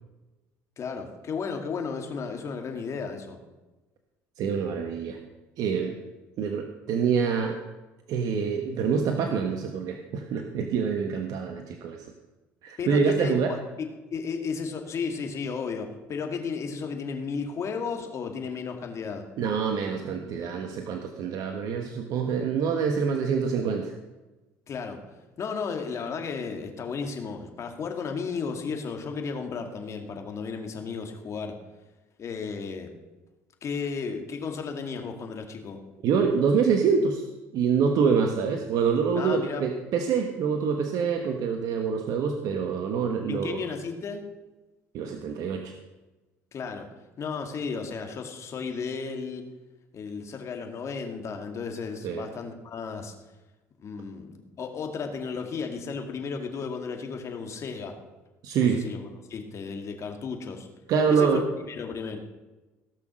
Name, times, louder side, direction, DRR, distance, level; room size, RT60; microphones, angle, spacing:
voice 1, 0.8-3.4 12.8-19.3 24.7-25.0 25.4-31.5 32.2-32.9 33.6-35.8 39.2-39.6 43.3-44.2 46.5-46.9 47.2-49.5 49.9-53.1 53.8-58.0 58.6-60.7 61.1-62.2, left 5 dB, 50° left, 4 dB, 2.2 m, -34 dB
voice 2, 4.4-5.2 5.6-6.0 6.4-7.6 8.1-12.1 12.6-13.6 19.4-23.9 36.0-37.2 37.5-43.7 44.9-45.7 52.0-52.2 58.4-58.8 60.9-61.4, right 6 dB, 65° right, 5 dB, 1.2 m, -26 dB
17.0 x 6.1 x 6.3 m, 1.1 s
supercardioid pair, 75°, 7 cm